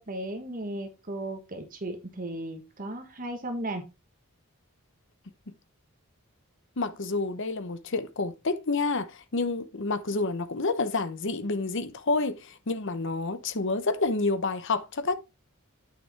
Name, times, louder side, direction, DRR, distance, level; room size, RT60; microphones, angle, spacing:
voice 1, 0.0-3.8, right 1 dB, 40° right, 1.3 m, -35 dB
voice 2, 6.8-15.2, left 3 dB, 55° left, 0.9 m, -29 dB
9.1 x 6.1 x 3.4 m
head